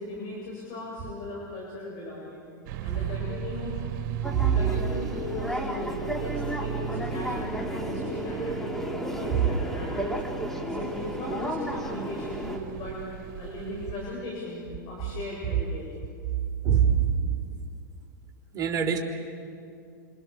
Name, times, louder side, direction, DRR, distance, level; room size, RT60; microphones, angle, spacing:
voice 1, 0.0-2.5 2.8-3.7 4.5-10.2 10.5-13.0 13.4-15.9, left 2 dB, 45° left, -4 dB, 7.9 m, -37 dB
sound 1, 2.7-14.2, right 9 dB, 55° right, 2.5 m, -37 dB
sound 2, 4.2-12.6, equal, 5° left, 2.8 m, -33 dB
voice 2, 16.6-17.3 18.5-19.0, right 8 dB, 30° right, 1 dB, 3.8 m, -23 dB
27.0 x 27.0 x 7.1 m, 2.4 s
hypercardioid pair, 110°, 11 cm